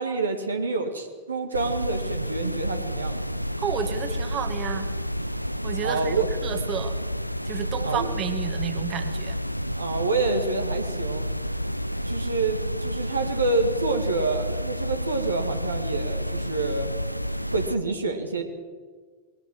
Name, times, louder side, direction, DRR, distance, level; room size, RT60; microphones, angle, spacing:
voice 1, 0.0-3.2 5.8-6.3 7.8-8.1 9.7-11.2 12.0-16.9 17.5-18.4, right 3 dB, 75° right, 4 dB, 2.1 m, -27 dB
sound 1, 1.5-17.8, equal, 90° left, 0.5 m, -30 dB
voice 2, 3.6-4.9 5.6-6.2 6.4-7.0 7.4-9.4, right 8 dB, 35° right, 7 dB, 2.1 m, -31 dB
20.5 x 17.0 x 7.5 m, 1.5 s
figure-of-eight pair, 90°, 0 cm